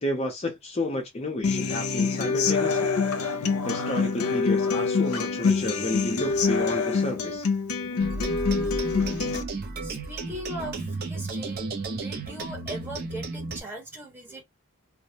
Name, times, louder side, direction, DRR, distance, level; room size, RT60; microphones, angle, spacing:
voice 1, 0.0-2.9 3.6-7.5, left 1 dB, 30° left, 0.5 m, -31 dB
Human voice / Acoustic guitar, 1.4-9.4, left 4 dB, 75° left, 0.5 m, -25 dB
sound 1, 8.0-13.6, right 3 dB, 45° right, 0.6 m, -33 dB
voice 2, 9.8-14.4, right 1 dB, 10° right, 0.9 m, -39 dB
2.3 x 2.1 x 2.7 m
head